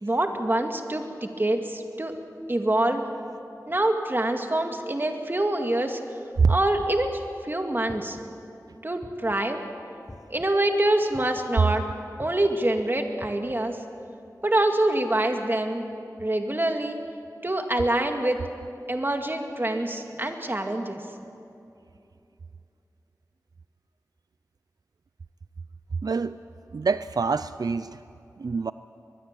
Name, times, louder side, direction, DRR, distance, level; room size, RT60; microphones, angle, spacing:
voice 1, 0.0-2.1 2.5-3.0 3.7-6.0 6.5-8.2 8.8-9.6 10.3-11.8 12.2-13.8 14.4-15.8 16.2-17.0 17.4-18.4 18.9-21.0, right 1 dB, 35° right, 4 dB, 2.2 m, -25 dB
sound 1, 6.8-7.2 7.9-8.4 9.0-9.5 10.1-10.4 11.1-11.5 12.2-12.5 13.2-13.6, left 1 dB, 25° left, 1.5 m, -44 dB
voice 2, 26.0-26.4 26.7-28.0 28.4-28.7, right 5 dB, 85° right, 13 dB, 0.4 m, -25 dB
23.5 x 21.0 x 7.6 m, 2.7 s
wide cardioid pair, 65°, 6 cm